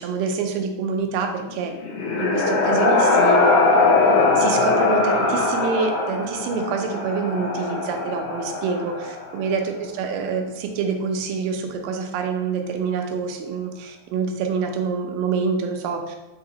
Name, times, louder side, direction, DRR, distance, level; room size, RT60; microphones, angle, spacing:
voice 1, 0.0-1.7 2.2-3.8 4.4-16.3, right 5 dB, 80° right, 4 dB, 2.1 m, -26 dB
sound 1, 1.5-9.4, left 3 dB, 85° left, 1.6 m, -21 dB
5.6 x 2.7 x 2.8 m, 1.1 s
omnidirectional pair, 4.1 m